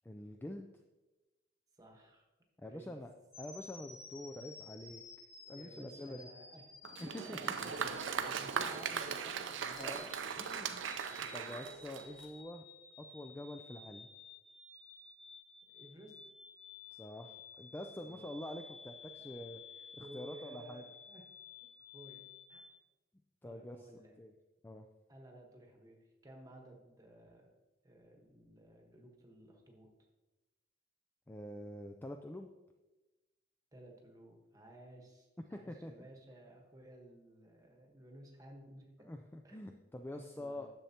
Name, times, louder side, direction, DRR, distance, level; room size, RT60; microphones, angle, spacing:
voice 1, 0.0-0.7 2.6-3.1 3.4-5.0 5.5-6.2 7.0-7.5 9.8-10.1 10.4-10.7 11.3-12.6 13.0-14.1 16.9-19.6 19.9-20.8 23.4-23.9 24.2-24.3 24.6-24.9 31.3-32.5 35.5-35.9 39.1-40.7, left 1 dB, 10° left, 5 dB, 0.3 m, -46 dB
voice 2, 1.7-2.2 2.6-3.0 5.5-6.7 7.1-9.9 10.4-10.9 15.7-16.3 18.0-18.3 19.2-19.3 20.0-21.2 21.9-22.2 22.5-22.6 23.4-24.1 25.1-27.5 27.8-29.9 33.7-39.1 39.4-39.8 40.1-40.7, right 1 dB, 20° right, 1 dB, 1.2 m, -55 dB
sound 1, 3.3-22.7, left 4 dB, 35° left, 1.2 m, -54 dB
Applause, 6.8-12.4, right 6 dB, 85° right, 0.5 m, -39 dB
10.5 x 6.9 x 2.8 m, 1.1 s
head